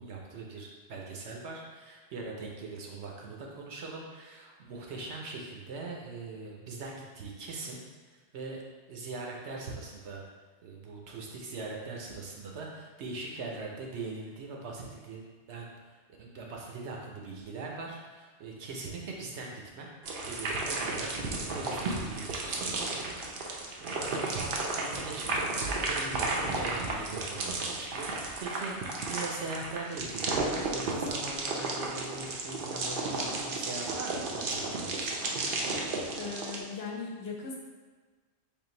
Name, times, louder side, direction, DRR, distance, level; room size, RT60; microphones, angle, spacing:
voice 1, 0.0-8.6 8.9-10.2 10.6-15.2 15.5-19.9 20.3-35.2, right 3 dB, 75° right, -1 dB, 1.0 m, -41 dB
sound 1, 20.0-36.6, right 3 dB, 60° right, 0.7 m, -33 dB
voice 2, 36.2-37.6, left 4 dB, 65° left, -2 dB, 0.8 m, -38 dB
3.8 x 2.5 x 3.8 m, 1.4 s
omnidirectional pair, 1.2 m